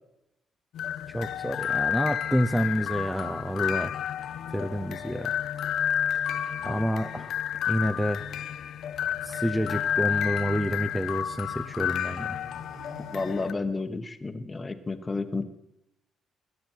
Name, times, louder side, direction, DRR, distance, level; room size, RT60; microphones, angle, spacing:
sound 1, 0.7-13.5, left 9 dB, 70° left, 0.6 m, -31 dB
voice 1, 1.1-4.0 4.5-5.3 6.6-7.3 7.7-8.3 9.2-12.4, equal, 5° right, 8 dB, 0.7 m, -28 dB
sound 2, 8.7-11.2 11.4-14.0, right 4 dB, 85° right, 5.0 m, -52 dB
voice 2, 13.1-15.4, left 3 dB, 25° left, 8 dB, 1.2 m, -31 dB
20.5 x 9.4 x 4.6 m, 0.87 s
cardioid pair, 90°, 0 cm